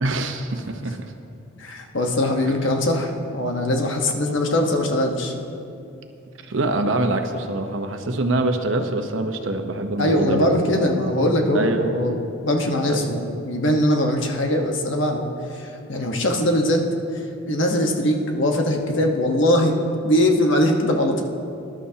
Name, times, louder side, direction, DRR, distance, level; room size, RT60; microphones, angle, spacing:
voice 1, 0.0-1.1 2.4-2.5 6.5-10.5 11.5-11.9 12.9-13.1, right 2 dB, 75° right, 6 dB, 0.9 m, -24 dB
voice 2, 1.6-5.3 10.0-12.1 12.4-15.2 15.5-16.8 17.1-19.7 20.0-21.2, left 1 dB, 70° left, 2 dB, 1.3 m, -21 dB
20.0 x 11.5 x 2.9 m, 2.6 s
head